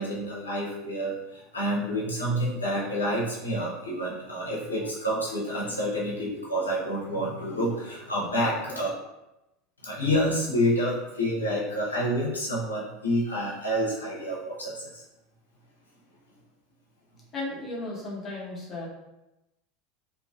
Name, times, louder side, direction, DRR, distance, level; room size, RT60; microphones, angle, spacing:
voice 1, 0.0-8.9 9.8-15.0, equal, 90° left, -5 dB, 0.6 m, -28 dB
voice 2, 17.3-18.9, left 2 dB, 35° left, -5 dB, 0.9 m, -35 dB
2.6 x 2.4 x 2.3 m, 0.95 s
figure-of-eight pair, 75°, 0 cm